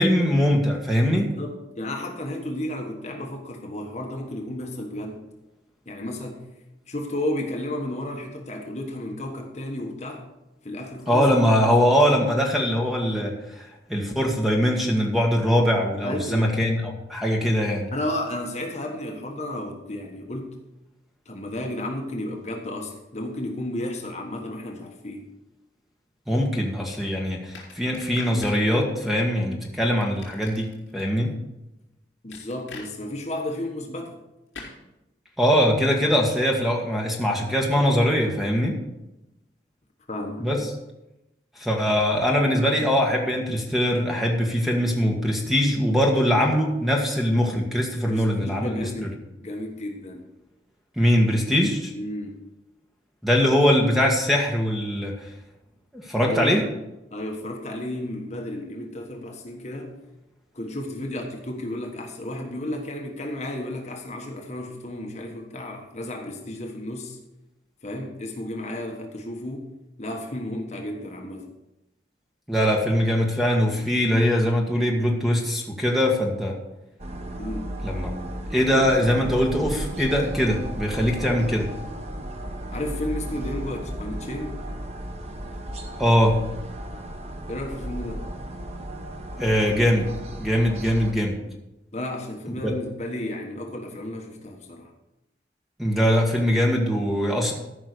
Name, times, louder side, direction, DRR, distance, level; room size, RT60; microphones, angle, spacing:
voice 1, 0.0-1.3 11.1-17.9 26.3-31.3 35.4-38.7 40.4-40.6 41.6-49.1 51.0-51.9 53.2-55.3 55.9-56.6 72.5-76.6 77.8-78.1 78.5-81.7 86.0-86.3 89.4-90.1 90.4-91.4 92.6-92.7 95.8-97.5, equal, ahead, 0 dB, 1.6 m, -22 dB
voice 2, 1.3-5.2 5.8-6.5 6.9-10.3 10.6-11.3 16.0-16.5 17.9-20.6 21.2-25.3 32.2-34.2 40.1-40.7 48.1-50.2 51.9-52.4 56.2-56.6 57.1-60.0 60.5-67.2 67.8-69.7 70.0-71.5 77.4-77.8 82.7-84.6 87.5-88.2 91.9-94.9, left 1 dB, 35° left, 1 dB, 1.3 m, -33 dB
sound 1, 27.5-28.6 30.0-31.0 32.3-32.9 34.5-34.8, left 4 dB, 80° left, 4.1 m, -41 dB
sound 2, 77.0-91.1, right 1 dB, 35° right, 0.9 m, -34 dB
14.0 x 5.6 x 6.7 m, 0.93 s
head